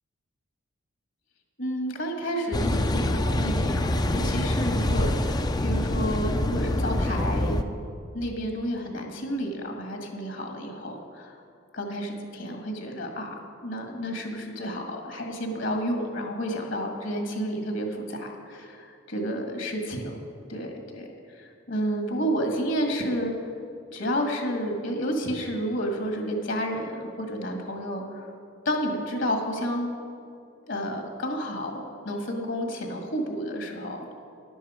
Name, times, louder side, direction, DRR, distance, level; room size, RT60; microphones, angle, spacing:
voice 1, 1.6-7.6 8.1-11.3 11.7-13.3 13.6-20.2 20.5-23.3 23.9-28.3 28.7-29.9 30.7-34.1, equal, 65° left, 2 dB, 1.9 m, -31 dB
Car passing by / Idling / Accelerating revving vroom, 2.5-7.6, left 1 dB, 20° left, 0.5 m, -25 dB
13.0 x 11.0 x 5.0 m, 2.5 s
head